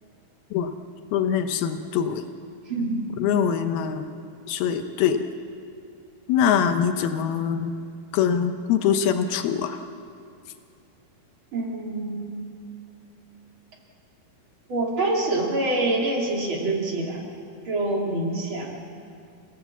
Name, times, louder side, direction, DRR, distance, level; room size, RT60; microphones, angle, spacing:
voice 1, 1.1-2.2 3.2-4.1 4.5-5.2 6.3-7.7 8.1-9.8, left 8 dB, 80° left, 7 dB, 2.8 m, -23 dB
voice 2, 2.7-3.1 11.5-12.5 14.7-17.3 17.6-18.8, right 2 dB, 35° right, -1 dB, 2.8 m, -26 dB
28.5 x 17.0 x 7.2 m, 2.4 s
omnidirectional pair, 4.5 m